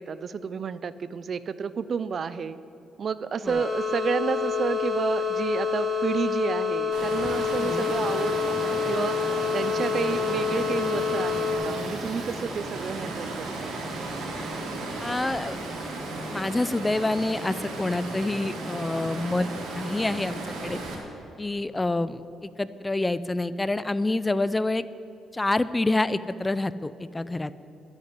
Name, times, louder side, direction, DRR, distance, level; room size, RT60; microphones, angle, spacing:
voice 1, 0.0-2.6 3.0-9.2 9.5-13.7, right 6 dB, 50° right, 15 dB, 0.6 m, -30 dB
sound 1, 3.5-11.5, left 6 dB, 20° right, 4.3 m, -27 dB
Water, 6.9-21.0, right 2 dB, 75° right, 3.6 m, -34 dB
voice 2, 7.6-7.9 15.0-15.6 16.3-19.5 19.7-20.8 21.4-24.8 25.3-27.5, left 2 dB, 15° left, 16 dB, 0.5 m, -27 dB
12.0 x 9.7 x 9.4 m, 2.9 s
cardioid pair, 90°, 0 cm